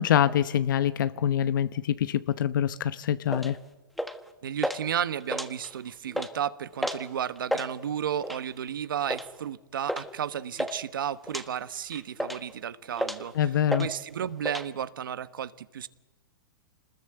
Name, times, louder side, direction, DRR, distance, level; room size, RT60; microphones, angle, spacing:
voice 1, 0.0-3.6 13.3-13.9, left 10 dB, 70° left, 0.9 m, -25 dB
sound 1, 3.3-3.5 4.0-4.3 4.6-4.8 5.2-5.8 6.1-6.3 6.8-7.1 7.4-7.7 8.2-8.5 9.1-9.3 9.9-10.1 10.3-10.8 11.3-11.5 11.9-12.5 13.0-13.3 13.7-13.9 14.1-14.7, equal, ahead, 1.2 m, -31 dB
voice 2, 4.4-13.3 13.8-15.9, right 9 dB, 85° right, 1.2 m, -33 dB
25.5 x 20.5 x 7.9 m
hypercardioid pair, 145°, 11 cm